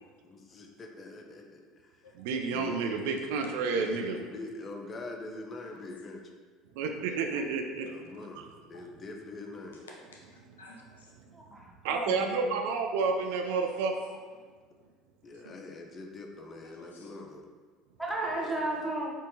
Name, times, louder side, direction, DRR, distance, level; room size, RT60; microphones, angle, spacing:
voice 1, 0.2-2.0 2.4-2.8 3.7-6.2 7.8-9.8 15.2-17.5, left 2 dB, 35° left, 2 dB, 0.5 m, -43 dB
voice 2, 2.1-4.2 6.8-7.9 8.4-8.5 11.8-13.9 15.4-15.5 18.2-18.5, right 4 dB, 70° right, 4 dB, 0.3 m, -30 dB
voice 3, 9.7-11.1 14.0-14.2 16.7-17.1 18.3-18.4, equal, 85° left, -1 dB, 0.5 m, -52 dB
voice 4, 11.3-12.5 18.0-19.1, right 1 dB, 5° right, -3 dB, 0.8 m, -34 dB
3.6 x 2.5 x 2.7 m, 1.5 s
hypercardioid pair, 70°, 0 cm